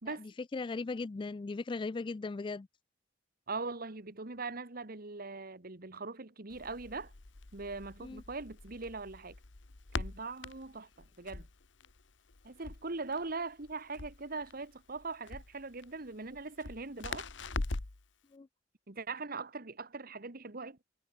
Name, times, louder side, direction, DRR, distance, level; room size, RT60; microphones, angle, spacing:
voice 1, 0.1-2.7 8.0-8.2 18.3-18.5, left 3 dB, 25° left, 0.3 m, -38 dB
voice 2, 3.5-7.1 7.5-9.3 9.9-10.9 11.2-11.5 12.4-17.3 18.9-20.8, right 3 dB, 50° right, 1.7 m, -41 dB
Crackle, 6.5-18.1, left 3 dB, 70° left, 1.3 m, -43 dB
head